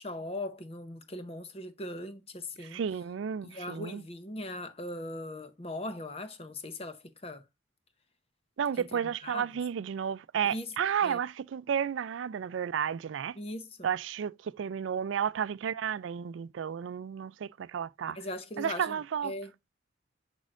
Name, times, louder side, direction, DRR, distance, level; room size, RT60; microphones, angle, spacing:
voice 1, 0.0-2.8 3.4-7.4 8.8-9.5 10.4-10.7 11.0-11.2 13.4-13.9 18.1-19.5, left 1 dB, 30° left, 0.8 m, -40 dB
voice 2, 2.6-4.0 8.6-13.4 13.8-18.2 18.6-19.3, right 8 dB, 85° right, 0.4 m, -32 dB
6.2 x 6.2 x 2.5 m
head